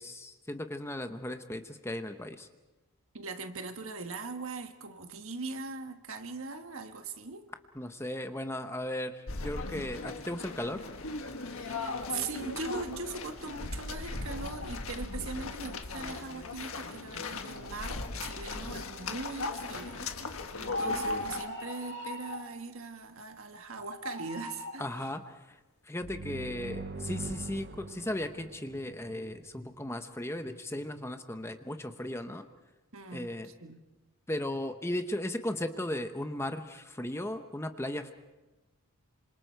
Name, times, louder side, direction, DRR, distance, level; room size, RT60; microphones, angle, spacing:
voice 1, 0.0-2.5 7.8-10.8 24.8-25.6 25.8-32.5 33.1-33.5 34.3-38.1, left 1 dB, 10° left, 8 dB, 0.8 m, -36 dB
voice 2, 3.1-7.5 11.5-24.9 32.9-33.8, right 4 dB, 70° right, 7 dB, 1.5 m, -41 dB
sound 1, 9.3-21.4, left 3 dB, 70° left, 1.5 m, -38 dB
sound 2, 20.7-22.5 23.8-24.8, left 1 dB, 50° left, 2.3 m, -37 dB
sound 3, 26.0-29.6, right 3 dB, 45° right, 0.8 m, -42 dB
27.0 x 26.0 x 4.6 m, 1.1 s
head